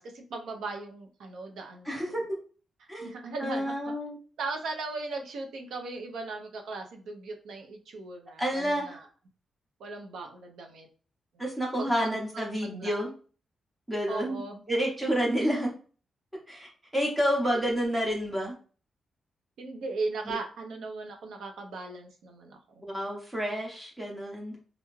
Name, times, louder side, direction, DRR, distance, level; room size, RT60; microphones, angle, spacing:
voice 1, 0.0-2.2 3.0-3.7 4.4-9.1 9.8-10.9 11.3-11.4 11.8-12.2 12.8-13.0 14.1-14.6 19.6-22.8, right 3 dB, 85° right, 3 dB, 0.5 m, -38 dB
voice 2, 1.9-2.2 2.9-3.1 3.4-4.2 8.4-9.0 11.4-13.1 13.9-14.4 14.7-15.7 16.5-18.5 20.3-20.4 22.8-24.6, equal, 10° right, -2 dB, 0.6 m, -29 dB
2.4 x 2.2 x 3.0 m, 0.39 s
wide cardioid pair, 165°, 0 cm